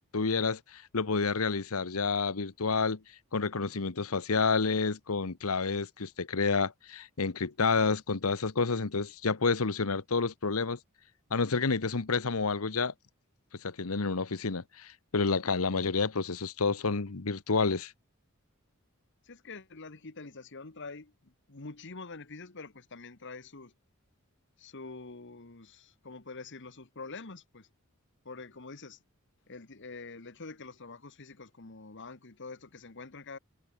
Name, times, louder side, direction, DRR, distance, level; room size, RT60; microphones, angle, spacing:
voice 1, 0.0-3.0 3.3-10.8 11.3-12.9 13.6-17.9, left 4 dB, 80° left, 1.1 m, -29 dB
voice 2, 19.2-23.7 24.6-27.7 28.2-29.0 29.5-33.4, left 3 dB, 55° left, 1.5 m, -46 dB
head